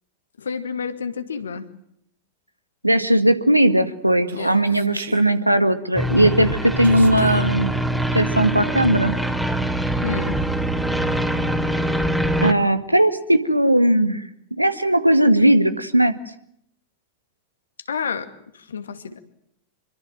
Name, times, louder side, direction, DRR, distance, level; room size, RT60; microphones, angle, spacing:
voice 1, 0.4-1.6 4.4-4.6 10.0-10.4 17.9-19.2, left 6 dB, 70° left, 9 dB, 2.4 m, -30 dB
voice 2, 2.8-7.7 8.1-9.2 12.4-14.2 14.6-16.1, right 1 dB, 90° right, 11 dB, 1.9 m, -18 dB
Human voice, 4.3-5.3 6.8-7.5, right 5 dB, 70° right, 3.2 m, -34 dB
sound 1, 6.0-12.5, right 1 dB, ahead, 2.9 m, -23 dB
26.5 x 23.5 x 7.7 m, 0.72 s
figure-of-eight pair, 90°, 0 cm